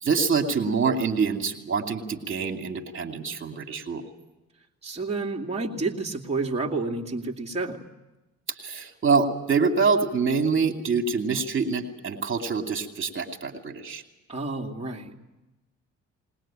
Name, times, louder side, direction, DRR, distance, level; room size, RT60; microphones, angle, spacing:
voice 1, 0.0-4.0 8.6-14.0, right 5 dB, 40° right, 4 dB, 2.7 m, -25 dB
voice 2, 4.8-7.9 14.3-15.2, right 3 dB, 20° right, -1 dB, 2.5 m, -30 dB
20.5 x 20.5 x 8.9 m, 0.99 s
cardioid pair, 90°, 30 cm